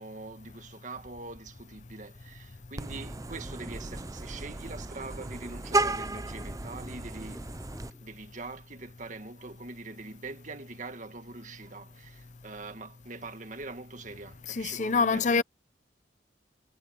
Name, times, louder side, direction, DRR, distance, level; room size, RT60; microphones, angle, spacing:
voice 1, 0.0-7.5 8.0-15.4, right 3 dB, 45° right, 1.7 m, -43 dB
sound 1, 1.0-8.1, equal, 5° left, 3.5 m, -56 dB
Vehicle horn car horn honking, 2.8-7.9, right 2 dB, 20° right, 0.6 m, -34 dB
voice 2, 14.5-15.4, left 4 dB, 45° left, 0.7 m, -25 dB
head